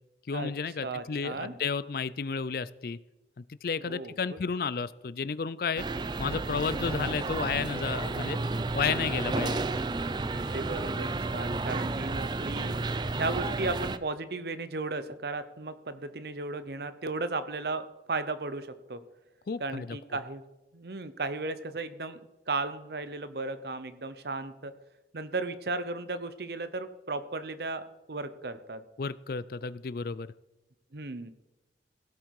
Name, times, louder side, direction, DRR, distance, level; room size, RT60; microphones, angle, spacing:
voice 1, 0.3-3.0 3.4-5.8 6.2-8.4 8.7-9.6 19.5-20.0 29.0-30.3, left 5 dB, 55° left, 17 dB, 0.4 m, -32 dB
voice 2, 0.8-1.5 3.8-4.4 10.3-12.8 13.2-19.0 19.6-20.4 20.7-22.2 22.5-24.8 25.1-28.8 30.9-31.3, right 3 dB, 65° right, 13 dB, 0.8 m, -35 dB
sound 1, 5.8-14.0, right 3 dB, 25° right, 0.4 m, -32 dB
16.5 x 8.1 x 4.8 m, 0.98 s
head